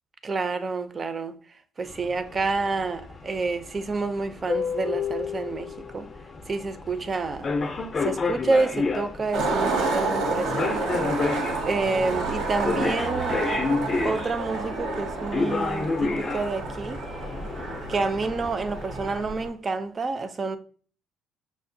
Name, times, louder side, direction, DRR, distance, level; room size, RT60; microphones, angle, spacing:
voice 1, 0.2-1.3 1.8-6.1 6.5-7.5 8.0-10.9 11.6-13.4 14.0-17.0 17.9-20.6, right 3 dB, 30° right, 0.4 m, -28 dB
sound 1, 1.9-19.2, left 4 dB, 35° left, 0.5 m, -31 dB
Skateboard, 9.3-19.5, right 3 dB, 85° right, 0.8 m, -29 dB
5.8 x 2.1 x 2.6 m
cardioid pair, 110°, 0 cm